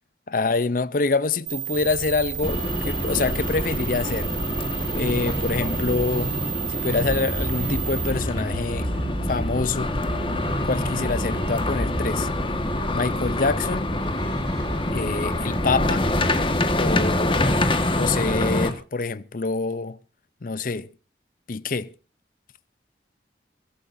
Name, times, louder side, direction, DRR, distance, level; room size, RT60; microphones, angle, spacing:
voice 1, 0.3-4.3 4.9-6.4 6.7-8.9 9.3-9.9 10.7-12.3 12.9-13.9 14.9-16.1 16.7-17.4 18.0-20.0 20.4-20.9 21.5-21.9, left 3 dB, 50° left, 0.6 m, -26 dB
sound 1, 1.5-8.1, right 10 dB, 90° right, 3.6 m, -32 dB
sound 2, 2.4-18.7, left 1 dB, 30° left, 1.6 m, -26 dB
Musical instrument, 4.4-16.2, right 1 dB, 70° right, 1.8 m, -34 dB
23.5 x 14.0 x 2.7 m
head